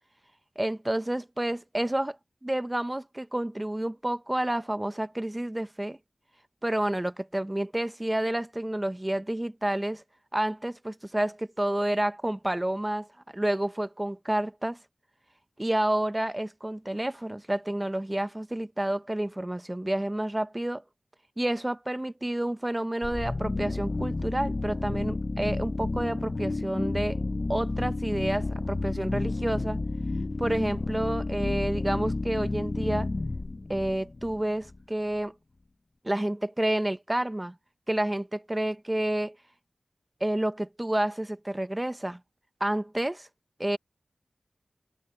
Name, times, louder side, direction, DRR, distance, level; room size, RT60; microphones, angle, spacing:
voice 1, 0.6-2.2 2.4-6.0 6.6-10.0 10.3-13.1 13.3-14.8 15.6-20.8 21.4-27.2 27.5-29.8 30.4-33.1 33.7-35.3 36.0-37.5 37.9-39.4 40.2-42.2 42.6-43.3 43.6-43.8, right 1 dB, 20° right, 0.8 m, -29 dB
sound 1, 23.0-34.8, left 2 dB, 45° left, 0.6 m, -31 dB
cardioid pair, 50°, 0 cm